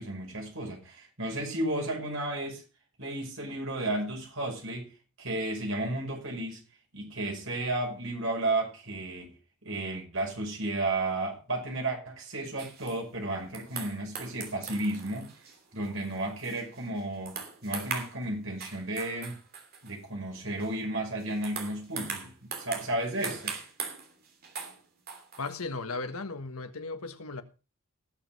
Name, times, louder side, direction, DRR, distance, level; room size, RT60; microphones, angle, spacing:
voice 1, 0.0-2.6 3.0-4.9 5.2-6.6 6.9-9.3 9.6-15.3 15.7-17.4 17.6-19.4 19.8-23.5, right 2 dB, 65° right, 5.7 m, -33 dB
sound 1, 12.6-13.0 13.5-17.0 17.3-18.3 18.6-19.9 20.6-20.7 21.2-24.8 25.1-25.6, right 5 dB, 45° right, 3.0 m, -40 dB
voice 2, 25.4-27.4, left 3 dB, 85° left, 1.5 m, -36 dB
18.5 x 6.6 x 5.3 m
head